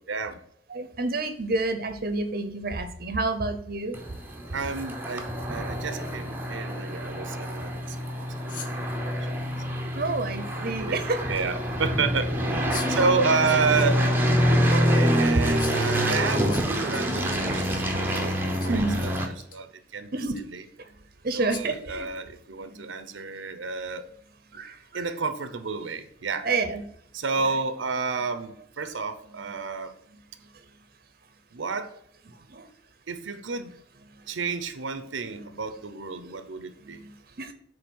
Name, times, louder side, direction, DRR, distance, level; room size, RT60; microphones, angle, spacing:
voice 1, 0.1-0.4 4.5-8.0 8.4-9.1 9.7-9.8 10.5-14.1 14.4-20.7 21.3-24.1 24.9-26.5 27.1-30.0 31.5-31.9 33.1-33.7 34.3-37.0, right 4 dB, 80° right, 10 dB, 0.7 m, -30 dB
voice 2, 0.7-4.0 9.9-11.2 18.7-19.1 20.1-20.4 21.2-22.1 22.7-22.9 24.5-25.1 26.4-26.8 32.5-32.7 35.4-35.5 36.8-37.5, right 3 dB, 50° right, 9 dB, 0.8 m, -29 dB
sound 1, 3.9-19.3, equal, 10° right, 0.9 m, -26 dB
sound 2, 8.5-8.9 10.4-10.5 12.7-13.0 13.5-13.9 14.3-14.4 15.6-15.9 16.5-18.0 18.6-19.1 19.4-19.6 20.3-20.4 21.5-21.8, left 7 dB, 45° left, 0.8 m, -40 dB
8.3 x 3.4 x 6.2 m, 0.69 s
head